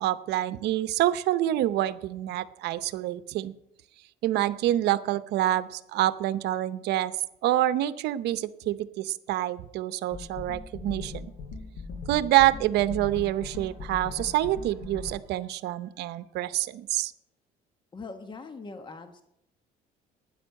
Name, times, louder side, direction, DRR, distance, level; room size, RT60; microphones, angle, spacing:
voice 1, 0.0-3.5 4.2-7.1 7.4-11.3 12.1-17.1, right 14 dB, 80° right, 15 dB, 0.7 m, -27 dB
sound 1, 10.1-15.1, left 4 dB, 85° left, 4.5 m, -39 dB
voice 2, 17.9-19.2, left 3 dB, 30° left, 8 dB, 1.1 m, -41 dB
12.5 x 9.8 x 6.5 m, 0.82 s
cardioid pair, 110°, 17 cm